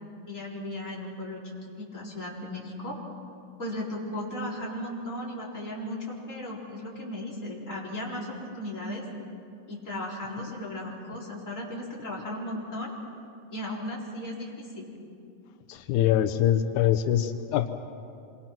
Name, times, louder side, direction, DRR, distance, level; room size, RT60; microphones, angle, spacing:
voice 1, 0.3-1.4 1.8-3.0 3.6-9.0 9.7-12.9 13.5-14.9, left 1 dB, 25° left, -5 dB, 4.8 m, -36 dB
voice 2, 15.7-17.7, left 11 dB, 90° left, 7 dB, 2.3 m, -24 dB
27.0 x 24.5 x 6.1 m, 2.4 s
omnidirectional pair, 3.4 m